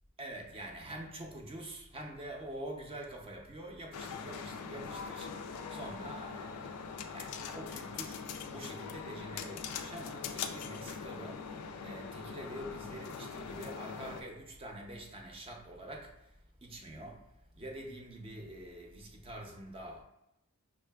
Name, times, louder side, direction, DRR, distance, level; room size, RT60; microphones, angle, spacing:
voice 1, 0.2-20.0, right 1 dB, 25° right, 0.5 m, -46 dB
sound 1, 3.9-14.2, left 6 dB, 90° left, 0.3 m, -42 dB
5.4 x 2.4 x 2.2 m
head